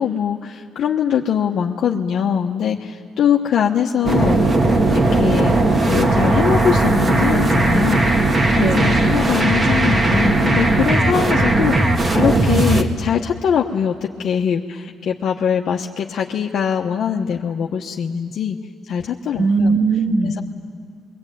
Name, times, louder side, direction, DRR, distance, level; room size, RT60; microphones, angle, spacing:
voice 1, 0.0-4.5 4.9-5.5 5.9-8.2 8.5-18.6 18.8-19.8 20.2-20.4, left 8 dB, 65° left, 0 dB, 1.1 m, -22 dB
sound 1, 4.0-12.8, right 2 dB, 35° right, 2.2 m, -17 dB
voice 2, 8.6-9.0 19.4-20.4, right 3 dB, 65° right, 4 dB, 2.7 m, -19 dB
25.5 x 22.5 x 9.3 m, 2.1 s
cardioid pair, 90°, 0 cm